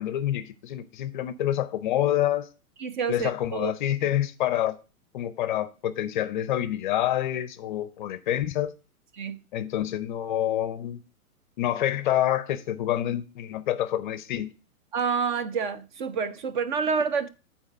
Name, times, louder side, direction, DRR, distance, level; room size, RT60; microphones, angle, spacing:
voice 1, 0.0-2.5 3.1-4.8 5.1-8.7 9.5-11.0 11.6-14.5, left 12 dB, 35° left, 0.5 m, -27 dB
voice 2, 2.8-3.7 9.2-9.4 14.9-17.3, right 5 dB, 35° right, 0.5 m, -28 dB
8.4 x 4.2 x 6.0 m
figure-of-eight pair, 115°, 44 cm